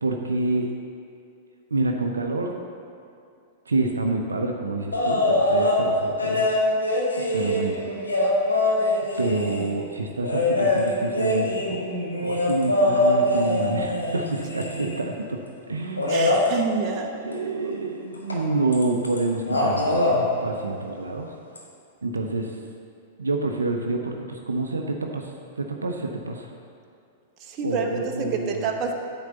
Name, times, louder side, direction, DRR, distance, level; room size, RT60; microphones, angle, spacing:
voice 1, 0.0-0.7 1.7-2.6 3.7-6.5 7.3-7.8 9.2-11.8 12.2-15.4 15.7-16.4 16.9-21.3 22.0-22.6 23.2-26.5 27.6-28.8, right 2 dB, 85° right, 3 dB, 0.7 m, -28 dB
sound 1, 4.9-5.8 6.2-9.7 10.2-15.1 16.0-16.5 18.3-18.4 18.7-19.2 19.4-20.2 21.6-21.7, left 1 dB, 90° left, 1.5 m, -23 dB
voice 2, 16.1-17.1 27.4-28.9, right 5 dB, 40° right, 3 dB, 1.0 m, -28 dB
9.4 x 4.1 x 6.6 m, 2.5 s
figure-of-eight pair, 100°, 0 cm